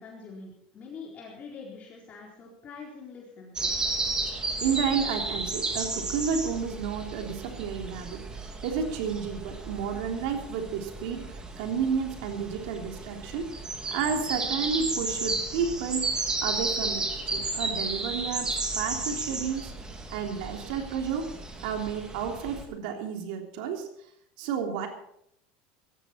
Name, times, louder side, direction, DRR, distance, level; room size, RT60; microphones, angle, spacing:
voice 1, 0.0-3.7, left 4 dB, 35° left, -3 dB, 4.2 m, -44 dB
sound 1, 3.6-22.6, right 3 dB, 15° right, 2.8 m, -33 dB
voice 2, 4.6-13.5 13.9-16.1 16.4-19.7 20.1-21.3 21.6-23.9 24.4-24.9, right 6 dB, 75° right, 4 dB, 3.3 m, -31 dB
18.0 x 14.0 x 4.5 m, 0.72 s
supercardioid pair, 130°, 5 cm